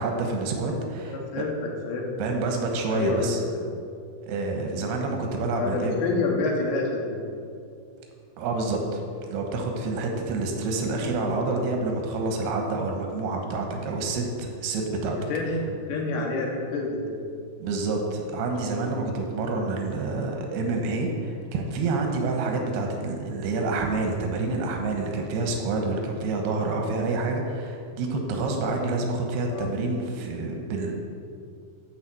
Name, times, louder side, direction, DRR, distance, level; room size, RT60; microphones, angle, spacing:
voice 1, 0.0-1.4 2.2-3.4 4.3-6.0 8.4-9.0 9.3-15.2 17.6-30.9, right 3 dB, 90° right, 2 dB, 3.0 m, -28 dB
voice 2, 1.1-2.3 2.9-3.7 5.6-7.2 15.2-17.3 29.5-29.7, left 3 dB, 80° left, -1 dB, 3.4 m, -28 dB
12.5 x 4.4 x 7.4 m, 2.4 s
omnidirectional pair, 4.6 m